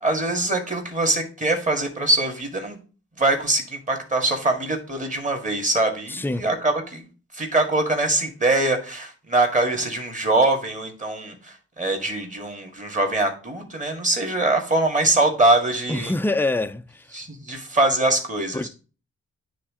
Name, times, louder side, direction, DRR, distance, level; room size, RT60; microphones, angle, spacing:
voice 1, 0.0-2.8 3.2-7.0 7.3-16.1 17.1-18.7, right 2 dB, 25° right, 1.9 m, -23 dB
voice 2, 6.1-6.5 15.9-17.0 18.5-18.7, left 2 dB, 5° left, 0.4 m, -25 dB
9.8 x 3.3 x 3.7 m
cardioid pair, 60°, 30 cm